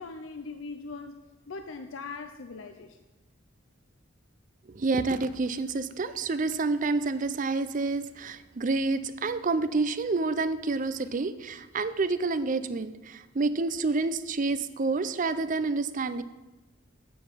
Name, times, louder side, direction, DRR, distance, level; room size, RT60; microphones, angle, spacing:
voice 1, 0.0-3.0, left 4 dB, 85° left, 7 dB, 0.6 m, -40 dB
voice 2, 4.7-16.2, right 3 dB, 40° right, 13 dB, 0.5 m, -28 dB
8.8 x 7.8 x 5.1 m, 1.1 s
head